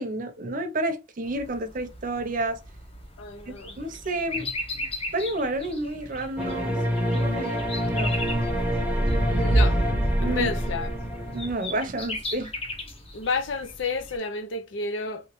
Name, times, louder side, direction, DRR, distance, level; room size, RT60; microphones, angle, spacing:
voice 1, 0.0-2.6 3.5-6.8 7.1-8.2 10.2-10.5 11.3-12.5, right 2 dB, 45° right, 0.7 m, -30 dB
sound 1, 1.2-14.2, left 2 dB, 30° left, 0.8 m, -38 dB
voice 2, 3.2-3.8 9.3-9.8 10.2-10.9 13.1-15.3, left 4 dB, 75° left, 0.6 m, -30 dB
sound 2, 6.4-11.5, equal, 10° right, 0.7 m, -25 dB
3.1 x 3.0 x 3.0 m
head